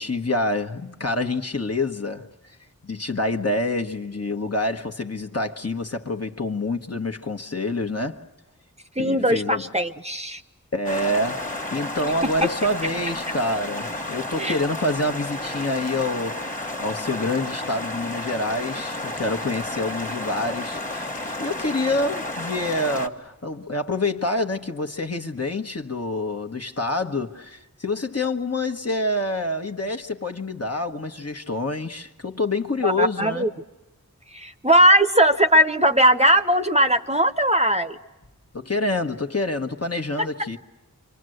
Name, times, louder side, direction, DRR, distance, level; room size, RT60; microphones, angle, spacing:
voice 1, 0.0-2.6 2.8-8.2 9.0-9.7 10.7-33.4 38.5-40.6, left 2 dB, 45° left, 1.3 m, -27 dB
voice 2, 9.0-10.4 14.4-14.6 32.8-33.5 34.3-38.0, right 1 dB, 20° right, 0.9 m, -19 dB
sound 1, 10.8-23.1, left 2 dB, 20° left, 1.6 m, -32 dB
27.5 x 24.0 x 7.9 m
wide cardioid pair, 40°, 34 cm